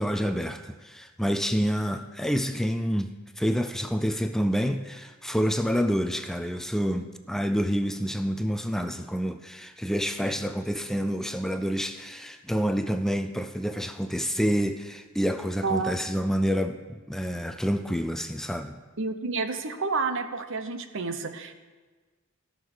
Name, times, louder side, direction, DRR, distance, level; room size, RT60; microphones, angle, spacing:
voice 1, 0.0-18.8, equal, ahead, 7 dB, 0.4 m, -28 dB
voice 2, 15.6-15.9 19.0-21.6, right 4 dB, 65° right, 8 dB, 0.9 m, -30 dB
14.5 x 6.6 x 7.1 m, 1.3 s
head